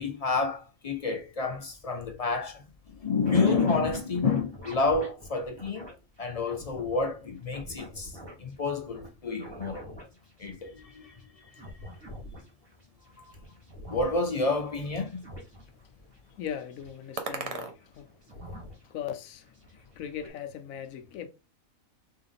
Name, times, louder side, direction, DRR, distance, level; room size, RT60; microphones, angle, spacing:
voice 1, 0.0-2.6 2.9-5.9 6.2-8.1 8.4-9.8 10.4-11.2 13.9-15.2, left 4 dB, 50° left, 0.4 m, -29 dB
sound 1, 3.2-5.9 6.2-7.1 7.4-9.1 9.4-19.1 19.4-20.3, equal, 20° right, 1.8 m, -45 dB
sound 2, 11.5-18.8, right 4 dB, 40° right, 0.5 m, -45 dB
voice 2, 16.4-18.1 18.9-21.3, left 9 dB, 90° left, 1.1 m, -39 dB
3.5 x 3.2 x 3.7 m
omnidirectional pair, 1.4 m